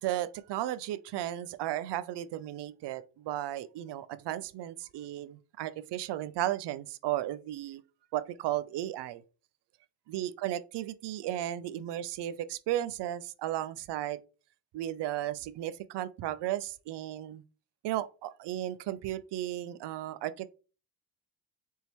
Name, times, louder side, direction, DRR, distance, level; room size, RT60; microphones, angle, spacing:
voice 1, 0.0-7.8 8.1-9.2 10.1-14.2 14.7-17.4 17.8-20.5, right 13 dB, 65° right, 0.6 m, -35 dB
4.1 x 3.7 x 3.0 m
supercardioid pair, 55°, 45 cm